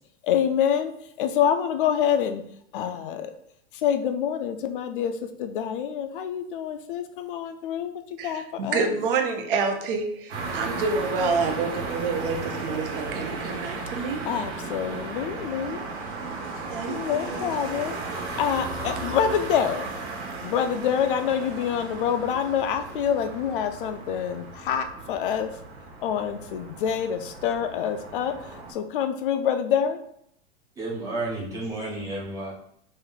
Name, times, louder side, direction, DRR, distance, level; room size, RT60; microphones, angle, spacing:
voice 1, 0.2-2.4 2.7-3.3 3.7-8.9 14.3-15.8 16.9-19.9 20.4-25.6 26.0-30.0, left 8 dB, 55° left, 9 dB, 0.4 m, -26 dB
voice 2, 8.2-14.2 16.7-17.5, right 4 dB, 55° right, 5 dB, 0.7 m, -28 dB
sound 1, 10.3-28.7, right 3 dB, 80° right, 1.4 m, -35 dB
voice 3, 30.8-32.6, right 2 dB, 10° right, -5 dB, 0.5 m, -31 dB
3.3 x 2.5 x 3.7 m, 0.70 s
supercardioid pair, 165°, 32 cm